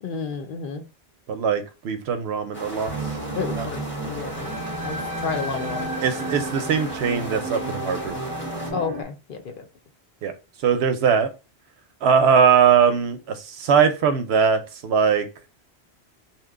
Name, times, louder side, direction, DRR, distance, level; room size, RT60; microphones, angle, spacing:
voice 1, 0.0-0.8 3.3-6.4 8.7-9.6, left 5 dB, 60° left, 5 dB, 0.7 m, -32 dB
voice 2, 1.3-2.9 3.3-3.7 6.0-8.2 10.2-10.3 10.6-11.3 12.0-15.3, right 7 dB, 85° right, 8 dB, 0.8 m, -21 dB
sound 1, 2.5-8.7, equal, 10° left, 0.8 m, -35 dB
sound 2, 2.9-9.0, right 2 dB, 40° right, 0.6 m, -32 dB
2.8 x 2.2 x 3.6 m, 0.29 s
omnidirectional pair, 1.1 m